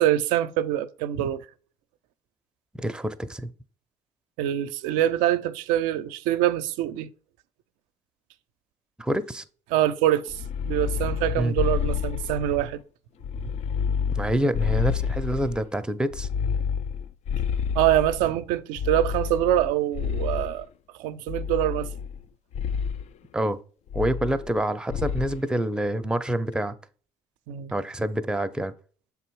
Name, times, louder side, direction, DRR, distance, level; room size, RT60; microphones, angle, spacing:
voice 1, 0.0-1.5 4.4-7.1 9.7-10.4 10.6-12.8 17.8-20.7 21.0-21.9 27.5-27.7, right 12 dB, 80° right, 0.4 m, -24 dB
voice 2, 2.8-3.5 9.0-9.4 11.4-11.5 14.1-16.3 23.3-23.6 23.9-26.7 27.7-28.7, right 1 dB, 5° right, 0.5 m, -27 dB
sound 1, 10.3-12.7 13.2-15.6 16.1-18.3 18.8-20.6 21.3-22.2 22.5-23.0 23.9-24.6 24.9-25.4, left 7 dB, 55° left, 0.4 m, -29 dB
6.6 x 3.5 x 4.6 m
supercardioid pair, 80°, 13 cm